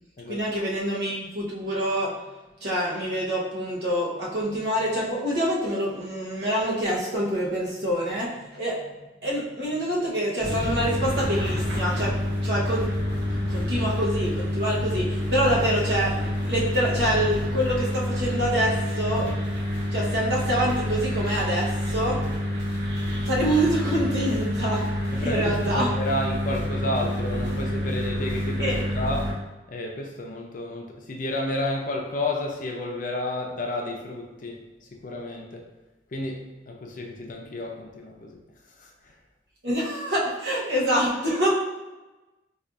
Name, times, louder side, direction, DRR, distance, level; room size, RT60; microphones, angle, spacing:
voice 1, 0.3-2.2 2.6-8.8 9.2-12.2 12.4-12.9 13.5-19.3 19.9-22.2 23.3-25.9 28.6-28.8 39.6-41.5, equal, 65° right, -5 dB, 1.0 m, -26 dB
sound 1, 10.4-29.3, left 1 dB, 80° right, 1.3 m, -28 dB
voice 2, 25.1-29.4 29.7-34.6 34.9-35.7 36.1-38.4 38.8-38.9, left 1 dB, 50° left, 1 dB, 0.5 m, -31 dB
4.5 x 2.4 x 2.5 m, 1.1 s
head